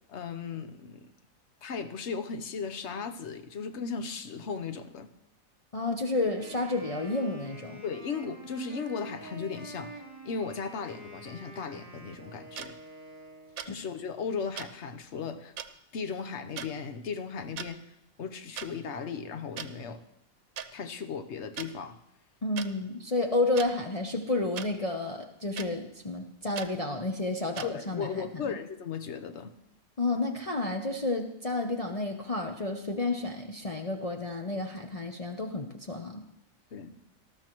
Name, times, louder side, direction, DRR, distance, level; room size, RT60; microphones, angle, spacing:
voice 1, 0.1-1.1 1.6-5.1 7.8-12.8 13.7-15.5 15.9-17.8 18.2-20.0 20.7-22.0 27.6-29.6 36.7-37.0, left 5 dB, 60° left, 8 dB, 1.1 m, -36 dB
voice 2, 5.7-7.8 13.7-13.8 22.4-28.5 30.0-36.3, left 2 dB, 35° left, 1 dB, 0.7 m, -31 dB
Wind instrument woodwind instrument, 6.1-13.8, right 2 dB, 45° right, 3.3 m, -47 dB
sound 1, 12.6-12.7 13.6-13.7 14.6-14.7 15.6-15.7 16.6-16.7 17.4-17.7 18.6-18.7 19.6-19.7 20.6-20.7 21.6-21.7 22.6-22.7 23.6-23.7 24.6-24.7 25.6-25.7 26.6-26.7 27.6-27.7, right 8 dB, 90° right, 1.2 m, -38 dB
19.0 x 13.0 x 3.0 m, 0.81 s
omnidirectional pair, 1.4 m